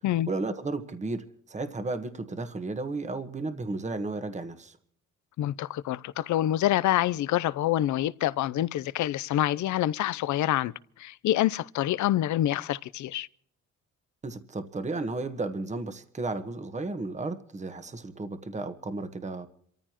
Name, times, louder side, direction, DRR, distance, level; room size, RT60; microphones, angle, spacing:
voice 1, 0.3-4.8 14.2-19.5, right 3 dB, 25° right, 1.4 m, -33 dB
voice 2, 5.4-13.3, left 13 dB, 70° left, 0.6 m, -27 dB
27.0 x 14.5 x 3.0 m
cardioid pair, 90°, 30 cm